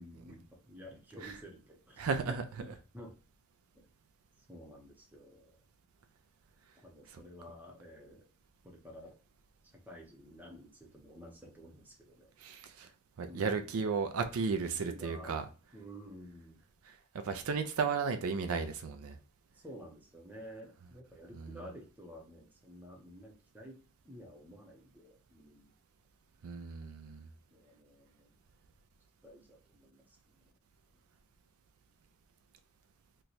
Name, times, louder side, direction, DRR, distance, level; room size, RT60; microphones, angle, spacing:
voice 1, 0.0-3.1 3.7-3.9 4.5-5.6 6.8-8.2 8.6-9.1 9.9-12.3 13.3-13.8 14.5-15.3 15.7-16.6 19.5-23.8 24.0-25.7 27.5-28.3 29.2-30.0, equal, 10° right, 0.7 m, -51 dB
voice 2, 2.0-2.4 12.4-12.9 13.2-15.4 17.2-19.1 21.3-21.6 26.4-27.3, right 5 dB, 75° right, 0.4 m, -34 dB
3.0 x 2.2 x 3.9 m
head